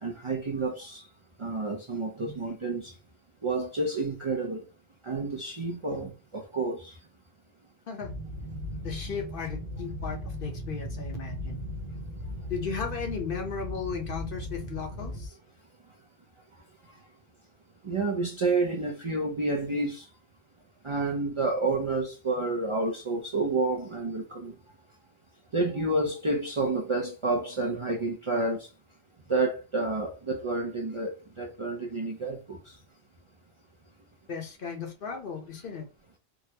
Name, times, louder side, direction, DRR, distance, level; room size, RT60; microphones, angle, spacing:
voice 1, 0.0-1.0 1.4-2.9 3.4-4.6 5.0-6.9 17.8-20.0 20.8-24.5 25.5-28.7 29.3-32.6, right 3 dB, 45° right, 0.4 m, -29 dB
sound 1, 8.0-15.3, equal, 75° right, 0.9 m, -37 dB
voice 2, 8.8-11.6 12.5-15.4 34.3-35.9, left 6 dB, 60° left, 0.9 m, -35 dB
3.7 x 2.0 x 2.8 m
omnidirectional pair, 1.1 m